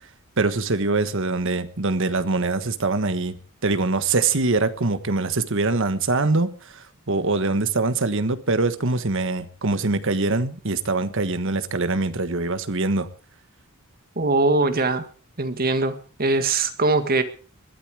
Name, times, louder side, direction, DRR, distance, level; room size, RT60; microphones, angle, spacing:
voice 1, 0.4-3.4 3.6-13.1, right 3 dB, 60° right, 12 dB, 1.4 m, -23 dB
voice 2, 14.2-15.1 15.4-17.2, right 3 dB, 45° right, 9 dB, 1.8 m, -21 dB
21.0 x 13.0 x 4.9 m, 0.39 s
head